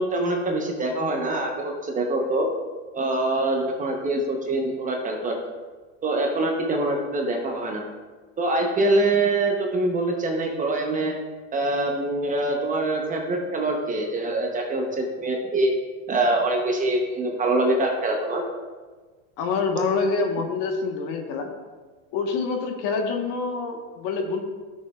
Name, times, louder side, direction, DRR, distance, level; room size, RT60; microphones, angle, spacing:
voice 1, 0.0-2.5 2.9-5.4 6.0-7.8 8.4-11.1 11.5-15.7 16.1-18.4, right 2 dB, 20° right, 1 dB, 0.8 m, -24 dB
voice 2, 19.4-21.5 22.1-24.4, left 4 dB, 45° left, 3 dB, 1.3 m, -26 dB
12.0 x 6.5 x 2.4 m, 1.4 s
supercardioid pair, 140°, 41 cm